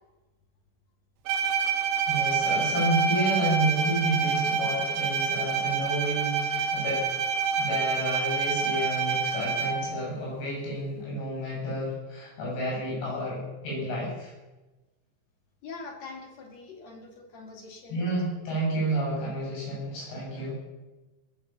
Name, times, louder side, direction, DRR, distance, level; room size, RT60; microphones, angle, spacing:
Bowed string instrument, 1.3-10.0, right 6 dB, 75° right, 3.8 m, -27 dB
voice 1, 2.1-7.0 7.6-14.3 17.9-20.5, right 1 dB, 60° left, -4 dB, 9.5 m, -30 dB
voice 2, 15.6-18.1, left 4 dB, 45° left, 0 dB, 2.6 m, -43 dB
20.5 x 8.0 x 7.2 m, 1.1 s
omnidirectional pair, 5.6 m